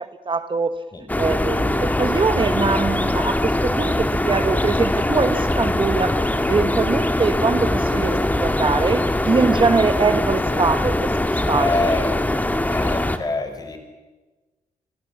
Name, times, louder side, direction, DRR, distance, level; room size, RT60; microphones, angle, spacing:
voice 1, 0.0-0.8 1.2-11.9, right 4 dB, 35° right, 10 dB, 1.2 m, -23 dB
sound 1, 1.1-13.2, left 1 dB, 10° left, 1.9 m, -22 dB
voice 2, 11.5-12.2 12.7-13.8, left 3 dB, 30° left, 7 dB, 5.0 m, -25 dB
28.5 x 21.0 x 7.1 m, 1.2 s
cardioid pair, 85°, 14 cm